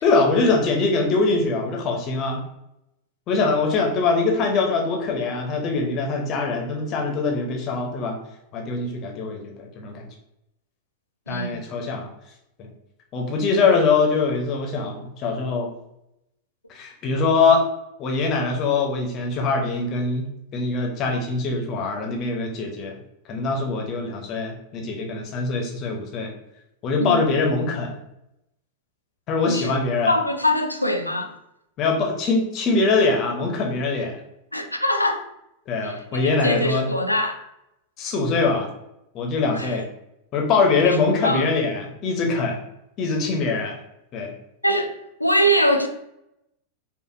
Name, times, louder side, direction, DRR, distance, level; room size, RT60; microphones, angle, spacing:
voice 1, 0.0-2.4 3.3-8.2 8.5-10.1 11.3-12.1 12.6-12.7 13.1-15.7 16.7-17.6 18.0-23.0 23.3-26.3 26.8-28.0 29.3-30.1 31.8-34.2 35.7-36.9 38.0-38.7 39.1-39.9 40.3-42.6 43.0-43.8 44.1-44.3, left 3 dB, 35° left, 0.8 m, -23 dB
voice 2, 11.3-11.6 27.0-27.3 29.5-29.7 30.1-31.3 34.5-35.2 35.8-37.4 39.5-39.8 40.8-41.0 41.2-41.5 44.6-45.9, equal, 85° left, 0.4 m, -23 dB
4.9 x 2.5 x 2.6 m
figure-of-eight pair, 90°, 0 cm